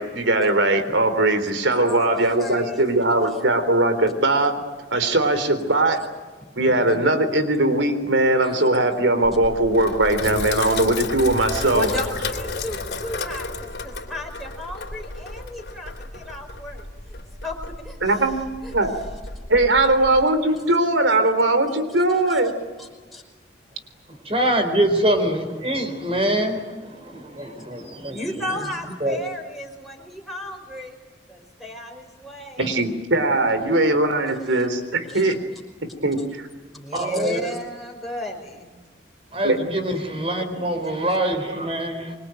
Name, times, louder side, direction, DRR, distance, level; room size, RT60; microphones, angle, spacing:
voice 1, 0.0-4.6 4.9-6.0 6.6-11.9 18.0-18.9 19.5-22.5 32.6-35.4 36.0-36.5 39.4-39.6 41.5-41.6, right 2 dB, 80° right, 10 dB, 3.7 m, -20 dB
voice 2, 1.7-3.4 8.4-8.5 11.7-18.3 18.6-18.8 22.2-22.5 22.8-23.2 28.1-31.0 31.3-32.7 34.5-34.7 35.1-35.4 36.7-38.7, left 1 dB, ahead, -1 dB, 5.2 m, -35 dB
Sink (filling or washing), 9.2-20.2, left 3 dB, 60° left, 3.2 m, -33 dB
voice 3, 24.1-28.2 29.0-29.2 32.6-32.7 36.9-37.4 39.3-42.2, right 1 dB, 30° right, 7 dB, 4.3 m, -24 dB
26.5 x 24.5 x 9.2 m, 1.4 s
head